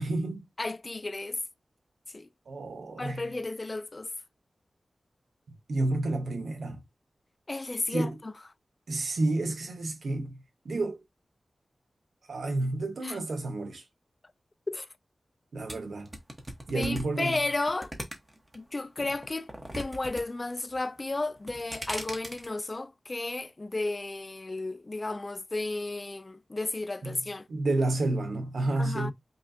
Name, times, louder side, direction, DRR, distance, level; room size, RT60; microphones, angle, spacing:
voice 1, 0.0-0.5 2.5-3.3 5.7-6.8 7.9-8.2 8.9-11.0 12.3-13.8 15.5-16.1 16.7-17.4 27.0-27.2 27.5-29.1, right 2 dB, 90° right, 1.0 m, -30 dB
voice 2, 0.6-1.4 2.1-2.3 3.0-4.1 7.5-8.3 13.0-13.2 14.7-14.9 16.7-17.9 18.5-19.5 19.7-27.5 28.8-29.1, left 2 dB, 35° left, 0.3 m, -33 dB
sound 1, 15.7-18.6 19.0-20.2 20.5-21.0 21.4-22.5, right 1 dB, 20° right, 1.1 m, -39 dB
5.3 x 2.4 x 2.7 m
wide cardioid pair, 85°, 0 cm